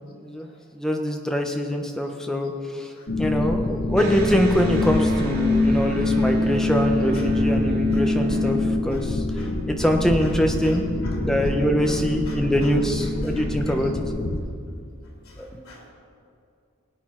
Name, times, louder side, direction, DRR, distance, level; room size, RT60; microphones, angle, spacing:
voice 1, 0.2-2.9 3.2-9.2 9.7-14.0 15.4-15.6, equal, ahead, 3 dB, 0.8 m, -24 dB
sound 1, 3.1-14.4, left 2 dB, 70° left, 1.2 m, -27 dB
Electric guitar, 3.9-9.4, left 2 dB, 45° right, 1.9 m, -25 dB
voice 2, 12.3-12.7 13.3-13.8 15.2-15.9, left 3 dB, 85° left, -2 dB, 3.3 m, -46 dB
20.0 x 8.4 x 4.4 m, 2.5 s
head